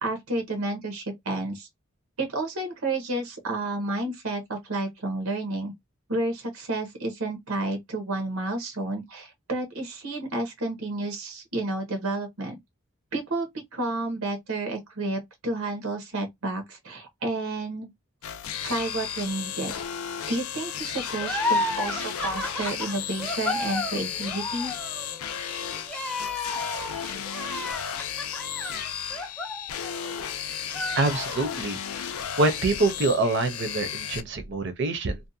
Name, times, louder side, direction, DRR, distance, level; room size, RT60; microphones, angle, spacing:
voice 1, 0.0-1.7 2.2-5.7 6.1-12.6 13.1-17.9 18.6-19.7 20.3-24.7, right 2 dB, 90° right, 0.9 m, -31 dB
sound 1, 18.2-34.2, left 8 dB, 90° left, 0.4 m, -34 dB
sound 2, 21.2-30.3 30.6-31.7, left 2 dB, 5° left, 0.5 m, -32 dB
voice 2, 31.0-31.8 32.4-35.2, right 3 dB, 60° right, 0.6 m, -25 dB
2.6 x 2.1 x 2.6 m
head